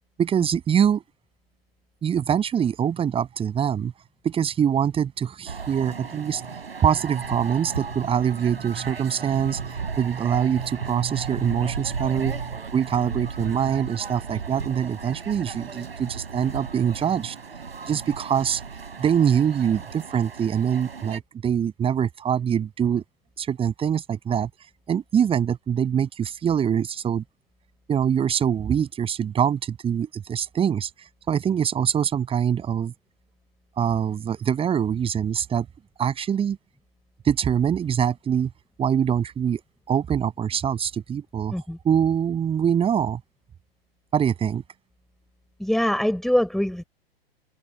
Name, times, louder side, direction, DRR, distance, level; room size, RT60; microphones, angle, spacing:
voice 1, 0.2-1.0 2.0-3.9 4.2-6.5 6.8-17.4 17.9-18.6 19.0-23.0 23.4-24.5 24.9-27.2 27.9-30.9 31.3-32.9 33.8-35.7 36.0-36.6 37.2-38.5 38.8-39.6 39.9-41.5 41.8-43.2 44.1-44.6, right 8 dB, 20° right, 7.7 m, -24 dB
sound 1, 5.5-21.2, right 5 dB, 70° right, 7.8 m, -35 dB
voice 2, 45.6-46.9, equal, ahead, 4.9 m, -23 dB
figure-of-eight pair, 105°, 30 cm